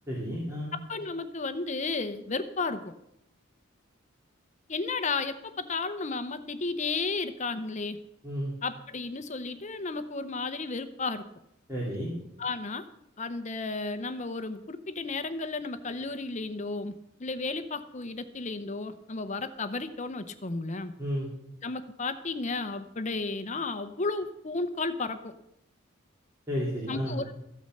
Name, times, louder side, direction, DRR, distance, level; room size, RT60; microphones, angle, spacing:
voice 1, 0.1-0.7 8.2-8.5 11.7-12.1 21.0-21.3 26.5-27.2, equal, 15° right, -6 dB, 3.0 m, -32 dB
voice 2, 0.7-2.9 4.7-8.0 8.6-11.2 12.4-12.9 13.2-16.9 17.2-20.9 21.6-25.3 26.9-27.3, left 3 dB, 35° left, 10 dB, 0.7 m, -33 dB
14.0 x 8.6 x 6.6 m, 0.79 s
head